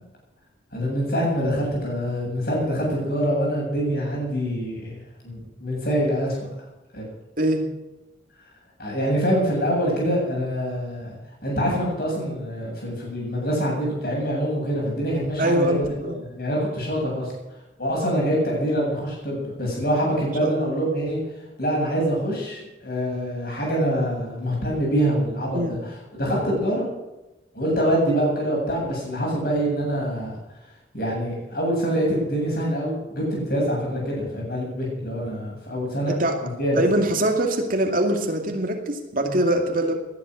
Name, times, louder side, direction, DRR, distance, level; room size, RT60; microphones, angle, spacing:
voice 1, 0.7-5.0 5.2-6.4 6.9-7.0 8.8-17.3 17.8-21.2 21.6-26.9 27.5-30.3 30.9-36.8, equal, 50° left, -2 dB, 7.9 m, -25 dB
voice 2, 15.4-16.2 20.4-20.5 25.5-25.7 36.1-36.4 36.8-39.9, right 1 dB, 45° right, 3 dB, 2.4 m, -23 dB
19.0 x 11.0 x 6.4 m, 1.0 s
head